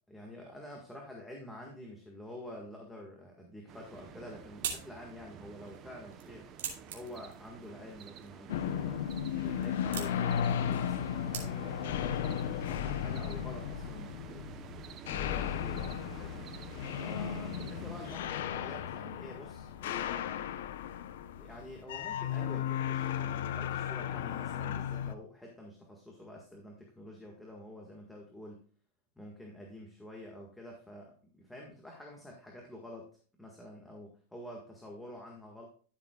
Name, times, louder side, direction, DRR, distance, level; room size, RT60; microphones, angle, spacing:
voice 1, 0.1-6.5 6.9-9.0 9.4-14.8 15.1-16.3 17.0-20.5 21.4-28.6 29.1-35.7, left 1 dB, 5° left, -1 dB, 1.7 m, -48 dB
sound 1, 3.7-18.2, right 8 dB, 30° right, 0.8 m, -50 dB
sound 2, 3.9-11.9, right 8 dB, 90° right, 2.9 m, -45 dB
sound 3, 8.5-25.1, left 9 dB, 75° left, 0.7 m, -35 dB
13.5 x 7.4 x 2.3 m, 0.42 s
supercardioid pair, 150°, 0 cm